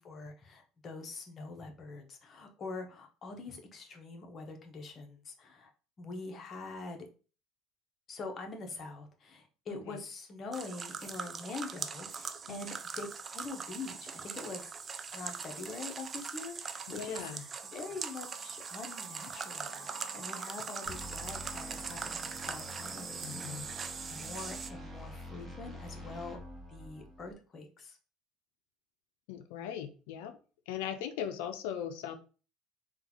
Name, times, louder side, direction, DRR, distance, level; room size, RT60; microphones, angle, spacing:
voice 1, 0.0-5.7 6.0-7.0 8.1-13.1 13.3-14.7 15.1-26.4 26.7-28.0, left 3 dB, 40° left, 4 dB, 0.8 m, -44 dB
sound 1, 10.5-24.7, right 5 dB, 35° right, 0.4 m, -41 dB
voice 2, 16.9-17.4 23.2-23.7 29.3-30.4 30.7-32.2, left 9 dB, 85° left, 8 dB, 0.4 m, -39 dB
sound 2, 17.2-25.1, right 4 dB, 50° right, 0.9 m, -56 dB
sound 3, 20.9-27.3, left 1 dB, 5° right, 1.0 m, -47 dB
3.7 x 2.3 x 2.9 m, 0.36 s
supercardioid pair, 95°, 0 cm